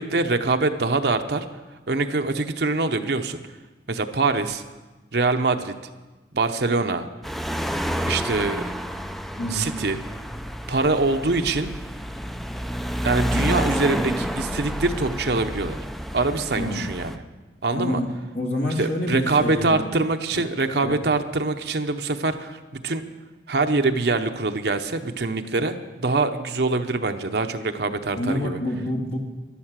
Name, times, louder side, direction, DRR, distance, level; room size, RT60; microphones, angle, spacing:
voice 1, 0.0-1.5 1.9-3.4 3.9-4.6 5.1-5.7 6.3-7.1 8.1-8.7 9.5-10.0 10.7-11.7 13.0-15.8 16.1-17.2 17.6-18.0 18.8-23.0 23.5-28.6, right 3 dB, 60° right, 6 dB, 0.8 m, -24 dB
sound 1, 7.2-17.2, equal, ahead, 0.5 m, -29 dB
voice 2, 9.4-9.7 16.6-16.8 17.7-18.1 18.3-19.8 20.8-20.9 28.1-29.2, left 1 dB, 65° left, 0 dB, 2.3 m, -27 dB
13.0 x 11.0 x 7.4 m, 1.2 s
head